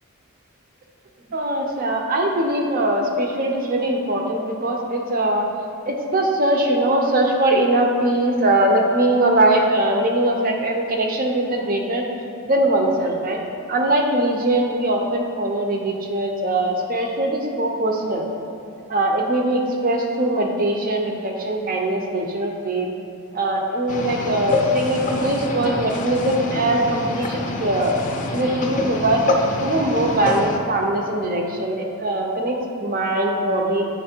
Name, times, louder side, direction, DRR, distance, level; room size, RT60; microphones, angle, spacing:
voice 1, 1.3-5.5 5.9-12.0 12.4-13.4 13.7-18.3 18.9-22.9 23.3-28.0 28.3-29.2 29.6-33.9, right 1 dB, 40° right, 2 dB, 0.7 m, -21 dB
sound 1, 23.9-30.6, left 2 dB, 35° left, 0.5 m, -26 dB
9.6 x 3.2 x 4.4 m, 2.5 s
head